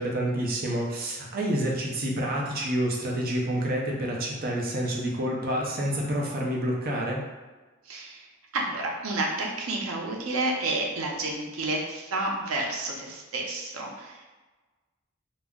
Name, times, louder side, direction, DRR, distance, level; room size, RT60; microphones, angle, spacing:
voice 1, 0.0-7.2, right 1 dB, 45° right, -1 dB, 0.5 m, -28 dB
voice 2, 7.8-8.3 8.5-14.4, right 2 dB, 90° right, 0 dB, 0.6 m, -30 dB
2.3 x 2.0 x 3.5 m, 1.2 s
head